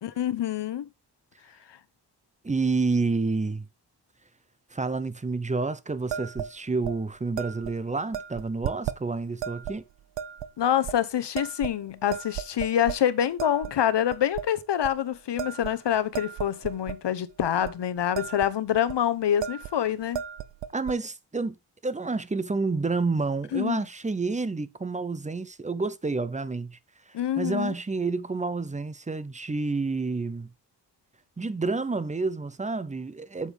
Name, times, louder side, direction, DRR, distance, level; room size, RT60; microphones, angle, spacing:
voice 1, 0.0-0.9 10.6-20.2 23.5-23.8 27.1-27.7, left 10 dB, 70° left, 1.0 m, -26 dB
voice 2, 2.4-3.7 4.7-9.8 20.7-21.6 21.8-26.8 27.4-30.5 31.4-33.5, right 3 dB, 15° right, 0.7 m, -29 dB
sound 1, 6.1-6.5 6.8-7.0 7.4-7.7 8.1-9.0 9.4-9.8 10.2-10.5 10.9-11.0 11.4-11.8 12.1-13.0 13.4-13.7 14.1-14.5 14.8-15.0 15.4-17.0 17.4-17.7 18.0-18.5 18.8-19.0 19.4-19.8 20.0-21.0, right 9 dB, 80° right, 0.7 m, -34 dB
8.3 x 7.2 x 3.5 m
wide cardioid pair, 120°, 43 cm